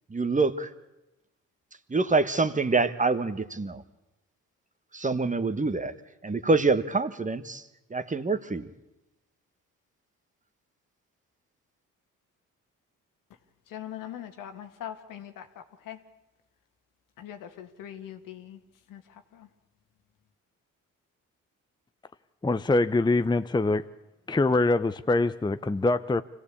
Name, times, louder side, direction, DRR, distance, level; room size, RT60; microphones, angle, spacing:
voice 1, 0.1-0.7 1.9-3.8 4.9-5.9 6.2-7.6 7.9-8.7, right 3 dB, 25° right, 1.5 m, -26 dB
voice 2, 13.7-16.0 17.2-18.6 18.9-19.0 19.3-19.5, left 10 dB, 85° left, 1.9 m, -41 dB
voice 3, 22.4-23.8 24.3-26.2, left 2 dB, 15° left, 0.7 m, -24 dB
25.5 x 16.0 x 8.5 m
supercardioid pair, 65°, 32 cm